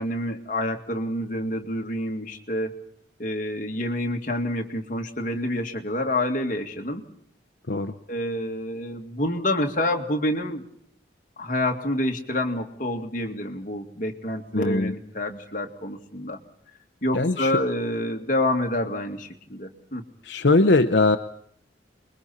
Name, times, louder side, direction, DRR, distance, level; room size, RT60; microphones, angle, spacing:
voice 1, 0.0-2.8 3.2-7.1 8.1-10.6 11.4-16.4 17.0-20.1, left 1 dB, 45° left, 2 dB, 2.1 m, -28 dB
voice 2, 14.5-14.9 17.1-17.5 20.2-21.2, left 3 dB, 70° left, 7 dB, 0.8 m, -20 dB
28.5 x 22.0 x 4.3 m, 0.69 s
head